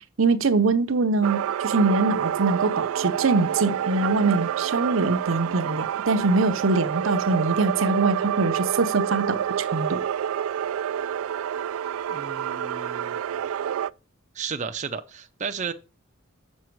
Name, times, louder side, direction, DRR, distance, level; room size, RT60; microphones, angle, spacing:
voice 1, 0.2-10.0, right 3 dB, 70° right, 0.7 m, -23 dB
sound 1, 1.2-13.9, right 9 dB, 90° right, 0.3 m, -28 dB
voice 2, 12.1-13.2 14.3-15.7, right 6 dB, 35° right, 0.5 m, -33 dB
7.9 x 6.3 x 4.6 m
head